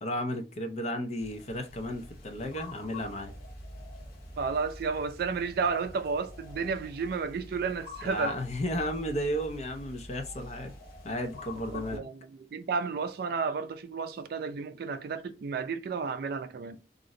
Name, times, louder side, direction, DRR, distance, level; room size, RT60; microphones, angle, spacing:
voice 1, 0.0-3.3 8.0-10.7 11.0-12.1, equal, 40° left, 0.5 m, -33 dB
sound 1, 1.2-12.0, left 1 dB, 55° left, 0.9 m, -46 dB
voice 2, 4.4-8.4 11.7-16.8, right 5 dB, 60° right, 0.3 m, -32 dB
2.5 x 2.0 x 3.7 m
head